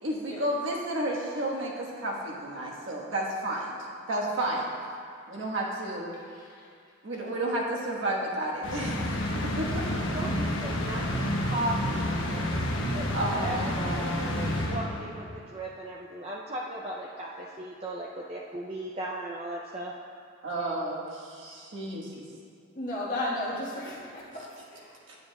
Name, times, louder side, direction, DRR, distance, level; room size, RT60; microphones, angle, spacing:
voice 1, 0.0-3.7 4.1-4.7 5.3-6.1 7.0-9.1 9.4-10.0 10.3-10.4 13.1-14.5 20.4-22.3 25.1-25.2, right 1 dB, 75° right, -3 dB, 1.4 m, -32 dB
voice 2, 6.1-6.7 22.7-25.0, left 1 dB, 40° left, -6 dB, 1.5 m, -35 dB
sound 1, 8.6-15.3, left 1 dB, 80° left, 1.0 m, -30 dB
voice 3, 9.9-19.9 21.4-21.6, right 1 dB, 30° right, -3 dB, 0.4 m, -37 dB
10.0 x 9.4 x 2.3 m, 2.2 s
head